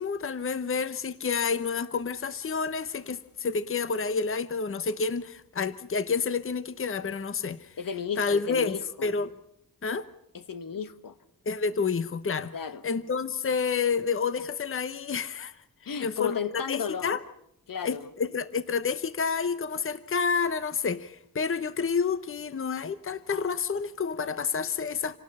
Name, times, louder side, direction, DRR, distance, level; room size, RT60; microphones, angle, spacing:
voice 1, 0.0-7.8 8.2-9.3 9.8-10.1 11.5-12.5 12.8-17.2 17.8-25.2, left 5 dB, 40° left, 0.9 m, -29 dB
voice 2, 7.8-9.1 10.3-11.1 12.5-12.8 15.8-17.1 17.7-18.1, left 6 dB, 80° left, 1.4 m, -34 dB
28.0 x 18.5 x 5.5 m
wide cardioid pair, 150°, 33 cm